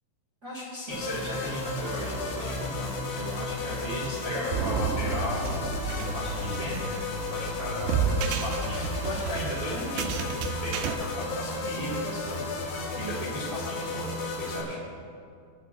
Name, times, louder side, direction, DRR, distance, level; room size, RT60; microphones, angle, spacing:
voice 1, 0.4-12.6 12.9-14.2 14.4-14.8, equal, 35° right, -7 dB, 1.3 m, -36 dB
sound 1, 0.9-14.6, left 3 dB, 85° left, 3.8 m, -33 dB
sound 2, 4.5-10.9, right 6 dB, 80° right, 2.2 m, -31 dB
24.0 x 8.3 x 2.5 m, 2.4 s
omnidirectional pair, 4.6 m